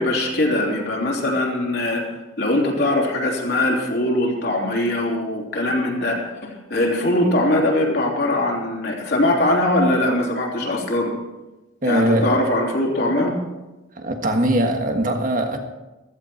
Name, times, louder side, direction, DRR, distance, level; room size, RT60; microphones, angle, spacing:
voice 1, 0.0-2.0 2.4-11.1 11.8-13.3, left 1 dB, 55° left, -1 dB, 3.2 m, -21 dB
voice 2, 11.8-12.4 13.9-15.6, right 1 dB, 40° right, 5 dB, 1.6 m, -21 dB
15.5 x 14.5 x 4.5 m, 1.1 s
head